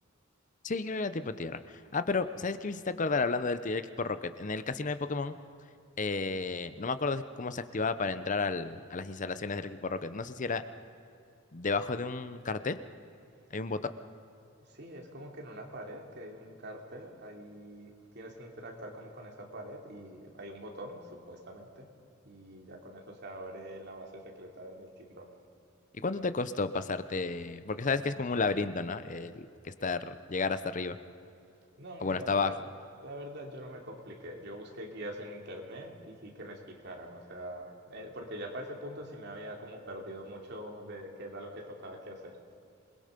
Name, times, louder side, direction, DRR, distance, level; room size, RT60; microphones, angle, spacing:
voice 1, 0.6-1.6 1.9-5.4 6.0-10.6 11.5-12.8 13.5-13.8 26.0-31.0 32.0-32.5, left 4 dB, 40° left, 12 dB, 0.7 m, -32 dB
voice 2, 14.7-21.9 22.2-25.3 31.8-42.4, right 1 dB, 60° right, 1 dB, 3.0 m, -44 dB
27.0 x 21.0 x 5.2 m, 2.6 s
head